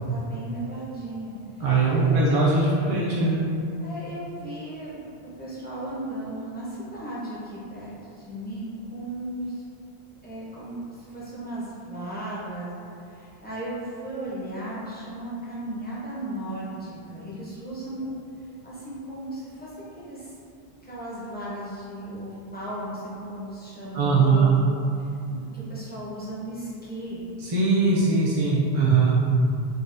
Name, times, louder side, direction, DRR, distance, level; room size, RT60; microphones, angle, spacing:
voice 1, 0.1-2.8 3.8-9.6 10.2-12.7 13.0-18.1 18.6-19.7 20.0-20.3 20.8-24.5 25.0-27.2, right 1 dB, 10° left, -9 dB, 0.6 m, -36 dB
voice 2, 1.6-3.4 23.9-24.6 27.4-29.1, right 4 dB, 50° right, -7 dB, 0.4 m, -21 dB
3.8 x 2.4 x 2.5 m, 2.5 s
omnidirectional pair, 1.1 m